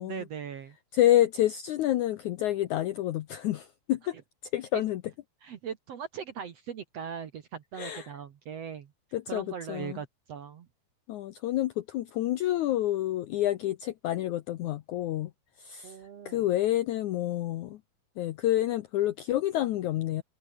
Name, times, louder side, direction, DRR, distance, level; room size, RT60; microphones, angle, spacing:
voice 1, 0.0-0.8 4.7-4.8 5.4-8.9 9.3-10.7 15.8-16.5, right 7 dB, 55° right, 1.9 m, -39 dB
voice 2, 0.9-4.1 4.5-5.0 7.8-8.1 9.1-10.0 11.1-15.3 15.6-16.0 16.3-17.8 18.2-20.2, left 13 dB, 75° left, 1.8 m, -28 dB
omnidirectional pair, 4.4 m